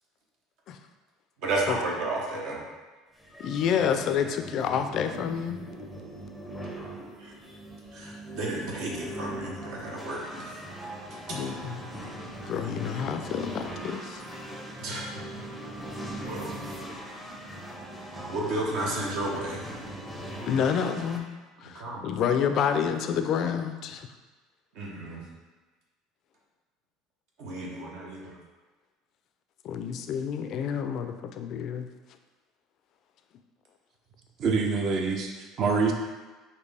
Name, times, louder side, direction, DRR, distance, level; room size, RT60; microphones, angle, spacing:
voice 1, 1.4-2.6 7.2-7.3 7.9-10.6 11.3-11.4 14.8-15.4 16.2-16.6 18.3-19.7 21.7-22.0 24.7-25.2 27.4-28.4, right 2 dB, 65° right, -2 dB, 0.9 m, -33 dB
sound 1, 3.2-21.2, right 1 dB, ahead, 0.6 m, -40 dB
voice 2, 3.4-5.6 11.3-11.9 12.2-14.2 20.5-21.3 21.6-24.1 29.6-31.9, left 7 dB, 50° left, 7 dB, 0.3 m, -29 dB
voice 3, 34.4-35.9, right 4 dB, 45° right, 3 dB, 0.6 m, -26 dB
4.2 x 2.7 x 3.3 m, 1.3 s
cardioid pair, 125°, 0 cm